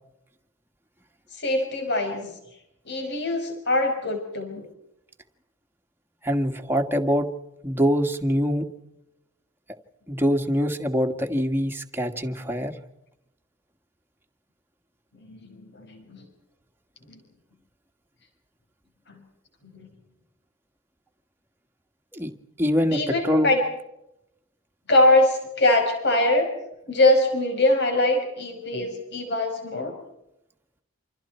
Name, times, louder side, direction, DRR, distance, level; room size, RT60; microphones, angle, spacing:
voice 1, 1.3-2.3 2.9-4.7 15.3-16.2 17.1-17.2 19.1-19.2 19.7-19.9 22.9-23.6 24.9-26.5 26.9-29.9, left 1 dB, 60° left, 4 dB, 5.6 m, -23 dB
voice 2, 6.2-7.3 7.6-8.6 10.1-12.7 22.1-22.3 22.6-23.5, equal, 10° right, 3 dB, 1.9 m, -24 dB
28.5 x 26.5 x 4.5 m, 0.85 s
head